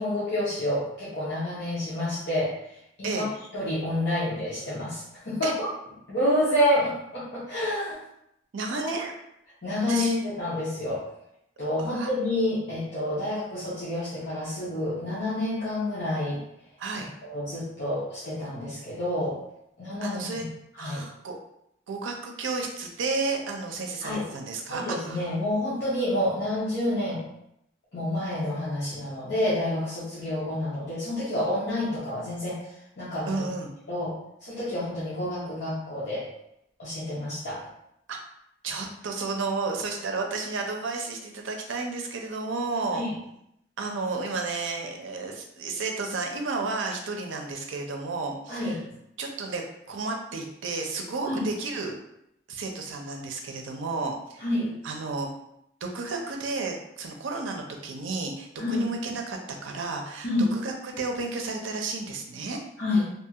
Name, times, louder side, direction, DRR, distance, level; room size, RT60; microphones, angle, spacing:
voice 1, 0.0-3.3 3.5-5.5 6.1-8.0 8.7-9.0 9.6-11.0 11.6-16.4 17.2-19.4 19.8-20.5 20.8-21.0 24.0-24.3 24.7-27.2 27.9-33.4 33.9-34.1 34.4-36.3 36.8-37.6 42.9-43.1 48.5-48.8 51.2-51.5 54.4-54.7 58.6-58.9 60.2-60.5 62.8-63.0, left 1 dB, 60° left, -10 dB, 0.8 m, -28 dB
voice 2, 8.5-9.1 9.9-10.2 11.9-12.1 16.8-17.1 20.0-20.4 20.8-21.4 21.9-25.3 33.3-33.7 38.1-38.2 38.6-43.1 43.8-48.8 49.2-51.9 52.5-54.4 54.8-55.3 55.8-62.6, right 3 dB, 90° right, 2 dB, 0.5 m, -32 dB
2.7 x 2.3 x 2.8 m, 0.78 s
head